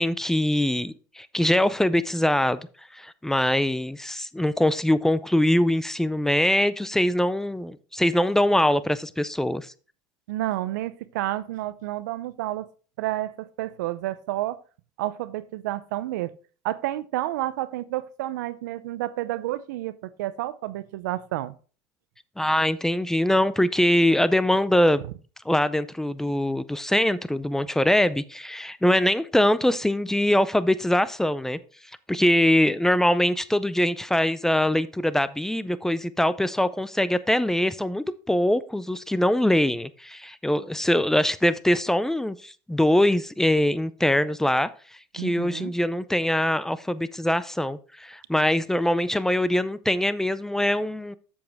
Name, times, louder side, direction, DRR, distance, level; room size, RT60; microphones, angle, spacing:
voice 1, 0.0-2.6 2.9-9.7 22.4-25.0 25.5-31.6 32.1-44.7 45.1-51.1, left 1 dB, 5° left, 0.4 m, -23 dB
voice 2, 10.3-12.7 13.0-14.6 15.0-16.4 16.6-21.5 45.2-45.7, right 15 dB, 85° right, 0.5 m, -30 dB
7.7 x 7.2 x 3.4 m
supercardioid pair, 115°, 9 cm